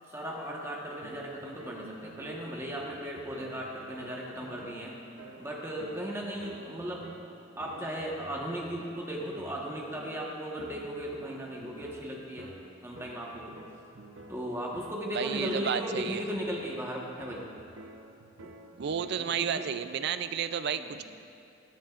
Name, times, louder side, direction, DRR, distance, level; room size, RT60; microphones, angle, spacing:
voice 1, 0.1-4.9 5.4-7.1 7.6-12.5 12.8-13.6 14.3-17.4 18.4-18.5 19.2-19.7 20.7-21.0, equal, 15° right, -3 dB, 1.2 m, -36 dB
sound 1, 1.0-20.1, right 1 dB, 90° right, 0.7 m, -50 dB
voice 2, 15.1-16.2 18.8-21.0, right 7 dB, 60° right, 11 dB, 0.4 m, -32 dB
14.5 x 10.0 x 2.5 m, 2.8 s
head